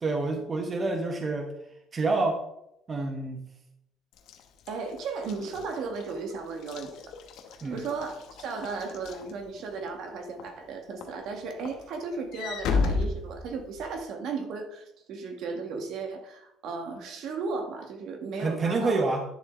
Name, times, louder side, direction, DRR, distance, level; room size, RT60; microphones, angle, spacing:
voice 1, 0.0-1.5 1.9-2.4 2.9-3.5 7.6-7.8 18.4-19.2, right 3 dB, 25° right, 4 dB, 1.0 m, -27 dB
Walk footsteps / Slam, 4.2-9.9 10.4-10.7 11.0-14.0, left 4 dB, 65° left, 1.1 m, -34 dB
voice 2, 4.7-7.1 7.7-19.0, right 4 dB, 60° right, 5 dB, 1.6 m, -35 dB
10.5 x 7.0 x 3.7 m, 0.80 s
cardioid pair, 165°, 0 cm